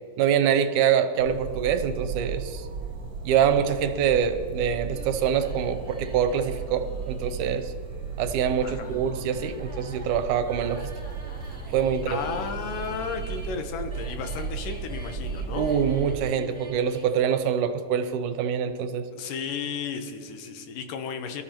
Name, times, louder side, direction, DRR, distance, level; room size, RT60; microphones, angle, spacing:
voice 1, 0.2-2.7 3.3-7.7 8.2-10.9 11.7-12.2 15.6-19.1, right 8 dB, 80° right, 9 dB, 2.2 m, -25 dB
sound 1, 1.2-16.2, right 5 dB, 40° right, 2.3 m, -35 dB
sound 2, 4.9-17.3, right 1 dB, 5° left, 0.9 m, -47 dB
voice 2, 8.6-9.0 12.0-15.7 19.1-21.4, left 6 dB, 85° left, 6 dB, 2.6 m, -34 dB
23.5 x 13.0 x 2.9 m, 2.2 s
omnidirectional pair, 3.7 m